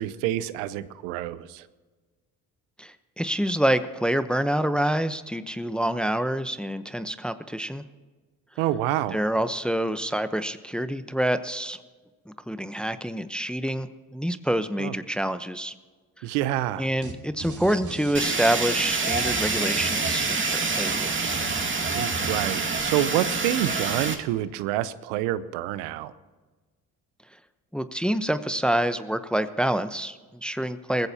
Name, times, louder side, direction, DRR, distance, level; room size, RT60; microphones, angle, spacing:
voice 1, 0.0-1.7 8.6-9.2 14.8-14.9 16.2-16.9 21.9-26.1, right 13 dB, 85° right, 15 dB, 0.8 m, -27 dB
voice 2, 2.8-7.8 9.1-11.8 12.3-15.7 16.2-16.3 16.8-21.4 27.7-31.1, right 1 dB, ahead, 11 dB, 0.9 m, -27 dB
sound 1, 17.0-17.1 17.4-22.8, right 4 dB, 45° right, 2.9 m, -37 dB
Fire, 18.1-24.1, right 4 dB, 30° right, 2.1 m, -27 dB
20.0 x 15.5 x 2.9 m, 1.4 s
hypercardioid pair, 55°, 40 cm